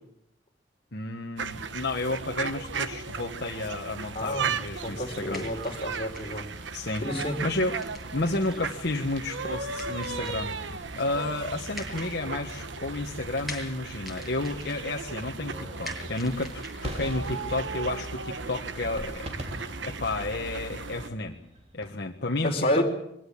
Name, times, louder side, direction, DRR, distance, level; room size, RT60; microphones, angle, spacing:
voice 1, 0.9-5.4 6.7-7.0 7.4-7.8 8.1-21.4 21.7-22.8, left 2 dB, 60° left, 2 dB, 1.5 m, -32 dB
sound 1, 1.4-21.1, right 4 dB, 75° right, 1.1 m, -36 dB
voice 2, 4.1-4.5 4.8-6.4 7.0-7.4 22.4-22.8, left 1 dB, 35° left, 1 dB, 4.5 m, -29 dB
sound 2, 5.3-19.0, left 1 dB, ahead, 7.9 m, -47 dB
sound 3, 9.8-21.9, right 1 dB, 35° right, 3.3 m, -44 dB
23.5 x 17.0 x 8.7 m, 0.78 s
head